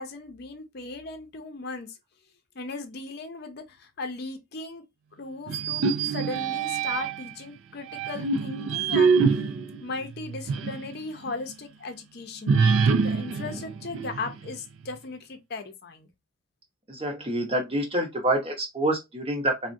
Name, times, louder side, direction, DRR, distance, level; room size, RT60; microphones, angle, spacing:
voice 1, 0.0-1.9 2.6-4.8 5.2-9.2 9.8-12.6 13.0-16.1, left 3 dB, 50° left, 0.5 m, -37 dB
sound 1, 5.5-7.3 7.9-10.9 11.3-11.4 12.5-14.5, right 5 dB, 70° right, 0.3 m, -25 dB
voice 2, 16.9-19.7, right 1 dB, 25° right, 0.8 m, -27 dB
3.4 x 2.1 x 2.5 m
head